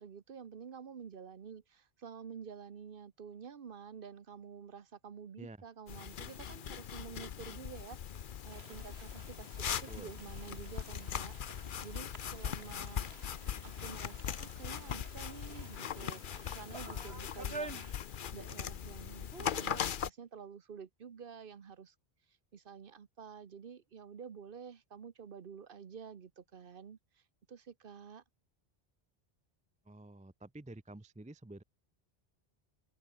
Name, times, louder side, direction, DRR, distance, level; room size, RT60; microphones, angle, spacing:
voice 1, 0.0-13.1 13.6-16.2 16.5-21.9 22.5-27.2 27.5-28.2, right 7 dB, 60° right, 1.1 m, -50 dB
sound 1, 5.9-20.1, left 8 dB, 55° left, 0.8 m, -40 dB
sound 2, 8.5-18.6 18.9-19.0 19.3-19.7, right 3 dB, 85° right, 3.2 m, -51 dB
voice 2, 29.9-31.6, right 2 dB, 10° right, 0.5 m, -50 dB
open air
omnidirectional pair, 1.0 m